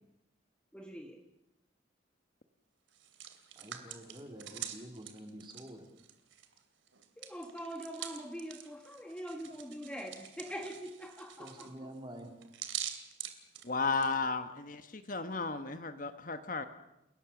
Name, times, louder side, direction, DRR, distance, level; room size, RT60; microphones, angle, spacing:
voice 1, 0.7-1.2 7.2-11.7, equal, 5° left, 2 dB, 1.6 m, -43 dB
Hands, 2.9-6.6 6.9-14.1, right 10 dB, 80° right, 2.7 m, -45 dB
voice 2, 3.6-5.9 11.4-12.3, right 1 dB, 25° right, 3 dB, 3.7 m, -48 dB
voice 3, 13.6-16.7, left 4 dB, 45° left, 9 dB, 1.2 m, -34 dB
29.5 x 18.0 x 7.2 m, 0.90 s
head